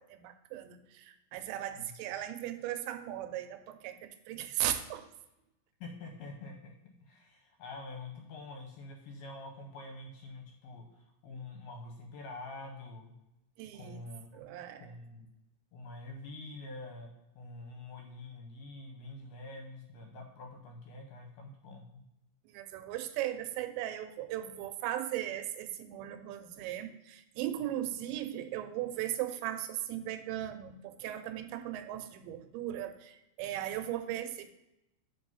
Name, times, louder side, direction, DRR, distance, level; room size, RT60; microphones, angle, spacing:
voice 1, 0.0-5.1 13.6-14.1 14.3-14.9 22.5-34.5, right 12 dB, 85° right, 8 dB, 2.8 m, -37 dB
voice 2, 5.8-13.1 13.7-14.2 14.8-15.3 15.7-17.1 17.4-22.0, left 2 dB, 75° left, 2 dB, 2.5 m, -46 dB
6.0 x 5.3 x 5.4 m, 0.89 s
omnidirectional pair, 5.2 m